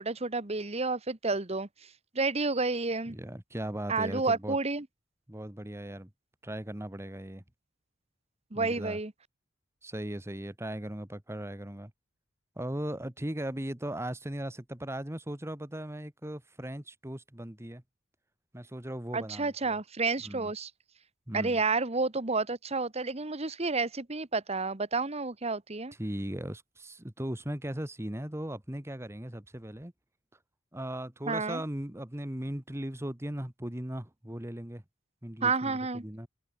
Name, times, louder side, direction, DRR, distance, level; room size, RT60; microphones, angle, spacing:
voice 1, 0.0-1.7 2.1-3.2 3.9-4.9 8.5-9.1 19.1-20.7 21.3-25.9 31.3-31.6 35.4-36.0, right 3 dB, 35° right, 1.4 m, -30 dB
voice 2, 3.1-4.6 5.3-6.1 6.4-7.4 8.5-9.0 9.8-11.9 12.6-17.8 18.5-19.8 20.2-20.5 21.3-21.6 26.0-29.9 30.7-34.8 35.2-36.3, right 1 dB, 15° right, 1.5 m, -38 dB
head